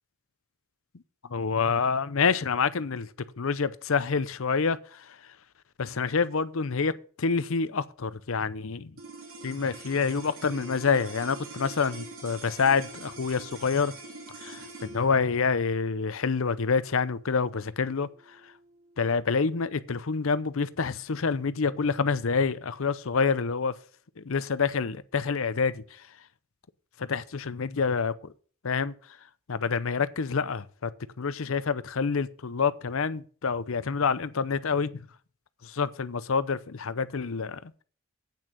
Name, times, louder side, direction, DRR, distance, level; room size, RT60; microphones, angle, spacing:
voice 1, 1.3-3.1 3.4-5.2 5.8-9.0 9.4-13.9 14.4-18.1 19.0-23.7 24.2-25.8 27.0-28.1 28.6-28.9 29.5-30.9 31.2-35.0 35.6-37.6, left 5 dB, 70° left, 0.6 m, -27 dB
sound 1, 8.9-19.4, right 3 dB, 75° right, 3.1 m, -45 dB
8.7 x 6.2 x 7.3 m
head